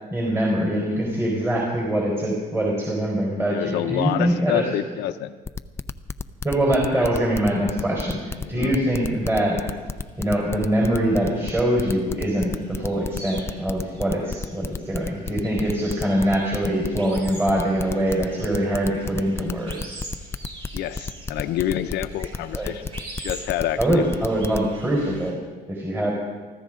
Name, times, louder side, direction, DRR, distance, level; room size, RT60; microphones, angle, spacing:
voice 1, 0.1-4.6 6.4-9.6 10.2-20.0 22.5-22.7 23.8-25.4 25.7-26.1, right 1 dB, 15° right, -2 dB, 4.3 m, -23 dB
voice 2, 3.5-5.4 6.8-7.1 8.4-8.7 20.7-24.0, left 12 dB, 80° left, 8 dB, 0.7 m, -28 dB
sound 1, 5.5-24.7, left 4 dB, 15° left, 0.5 m, -31 dB
sound 2, 9.0-25.3, right 1 dB, 35° right, 6.8 m, -44 dB
24.5 x 14.5 x 3.8 m, 1.4 s
cardioid pair, 110°, 17 cm